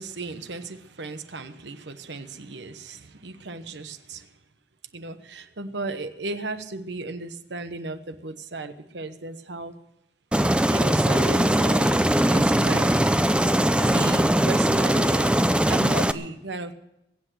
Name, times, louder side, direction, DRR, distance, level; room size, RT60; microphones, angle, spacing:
voice 1, 0.0-4.2 4.9-9.7 10.7-12.0 12.3-12.9 13.8-15.3 15.7-16.7, right 2 dB, 80° right, 9 dB, 1.1 m, -35 dB
Aircraft, 10.3-16.1, right 1 dB, 5° right, 0.5 m, -20 dB
22.5 x 8.0 x 6.2 m, 0.88 s
head